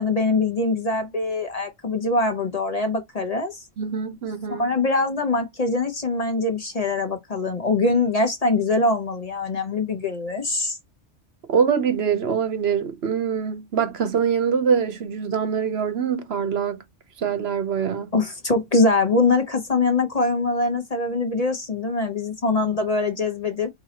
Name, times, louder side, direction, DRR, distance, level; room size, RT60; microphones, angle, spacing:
voice 1, 0.0-3.6 4.5-10.8 18.1-23.7, left 3 dB, 35° left, 1.0 m, -23 dB
voice 2, 3.8-4.7 11.5-16.8 17.2-18.1, right 7 dB, 65° right, 0.9 m, -24 dB
4.7 x 2.8 x 2.8 m
omnidirectional pair, 1.2 m